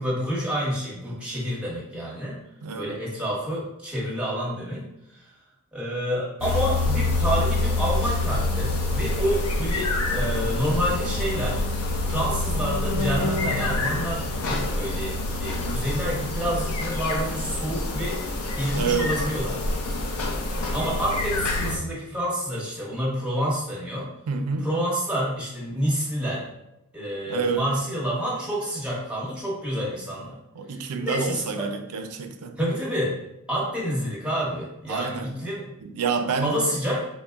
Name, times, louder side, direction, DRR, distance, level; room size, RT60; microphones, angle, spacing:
voice 1, 0.0-2.4 2.7-4.8 5.1-5.2 5.7-11.6 12.0-19.6 20.7-24.1 24.6-26.5 26.9-30.4 31.0-31.7 32.6-33.2 33.5-35.6 36.4-37.1, equal, 5° right, -6 dB, 1.1 m, -28 dB
voice 2, 2.6-3.0 13.4-13.8 18.7-19.2 24.3-24.7 27.3-27.7 30.5-32.6 34.9-35.3 35.8-36.6, right 5 dB, 85° right, 6 dB, 0.4 m, -28 dB
sound 1, 6.4-21.8, left 2 dB, 85° left, 0.6 m, -26 dB
3.9 x 2.1 x 3.4 m, 0.89 s
head